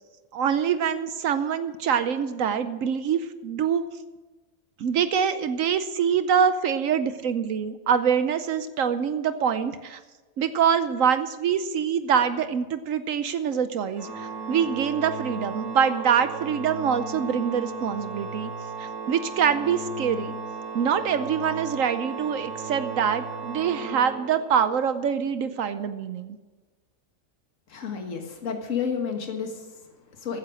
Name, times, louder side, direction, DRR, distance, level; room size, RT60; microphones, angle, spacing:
voice 1, 0.3-3.8 4.8-10.0 10.4-18.5 18.8-20.4 20.7-26.4, right 7 dB, 75° right, 11 dB, 1.1 m, -25 dB
Organ, 13.9-24.8, right 4 dB, 50° right, 3.8 m, -35 dB
voice 2, 27.7-30.4, left 6 dB, 65° left, 3 dB, 1.9 m, -31 dB
14.5 x 9.7 x 6.2 m, 1.2 s
omnidirectional pair, 1.4 m